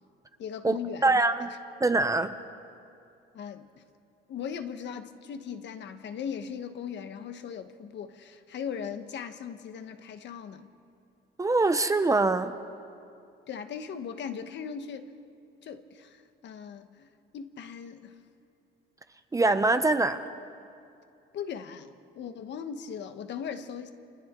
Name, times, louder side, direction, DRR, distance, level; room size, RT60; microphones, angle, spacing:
voice 1, 0.4-1.2 3.3-3.8 4.3-10.7 13.5-15.1 15.6-17.1 17.3-18.2 21.3-23.9, left 7 dB, 55° left, 8 dB, 1.3 m, -38 dB
voice 2, 1.0-1.5 1.8-2.3 11.4-12.5 19.3-20.2, right 3 dB, 15° right, 9 dB, 0.7 m, -23 dB
29.0 x 27.5 x 3.8 m, 2.6 s
cardioid pair, 145°, 21 cm